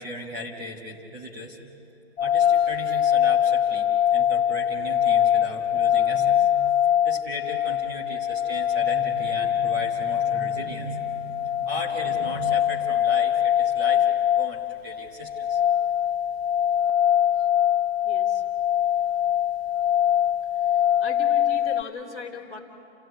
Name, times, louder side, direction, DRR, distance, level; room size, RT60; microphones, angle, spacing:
voice 1, 0.0-1.7 2.2-6.7 7.0-15.6, left 1 dB, 20° right, -1 dB, 1.4 m, -37 dB
sound 1, 2.2-21.8, left 10 dB, 70° left, 0.5 m, -23 dB
voice 2, 18.0-18.4 20.5-22.6, left 4 dB, ahead, -9 dB, 0.7 m, -39 dB
28.5 x 15.5 x 9.4 m, 2.7 s
hypercardioid pair, 180°, 32 cm